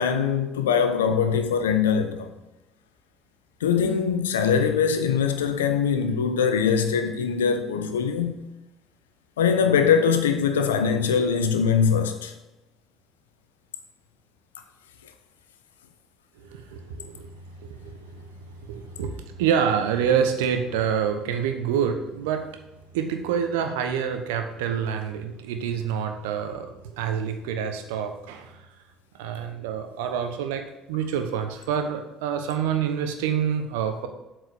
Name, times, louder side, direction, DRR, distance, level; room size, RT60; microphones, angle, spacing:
voice 1, 0.0-2.3 3.6-8.4 9.4-12.3, left 6 dB, 85° left, 0.8 m, -22 dB
voice 2, 16.4-22.6 22.9-28.7 29.2-34.1, right 7 dB, 75° right, 0.9 m, -27 dB
8.0 x 4.8 x 6.4 m
hypercardioid pair, 60°, 0 cm